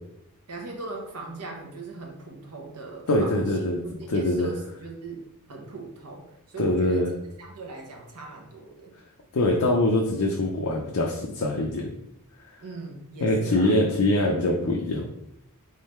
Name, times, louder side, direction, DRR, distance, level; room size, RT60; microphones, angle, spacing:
voice 1, 0.5-8.9 12.6-13.8, right 3 dB, 90° right, 1 dB, 0.9 m, -39 dB
voice 2, 3.1-3.8 4.1-4.5 6.6-7.1 9.3-11.9 13.2-15.1, left 1 dB, 70° left, 0 dB, 0.6 m, -23 dB
3.7 x 3.2 x 4.3 m, 0.82 s
head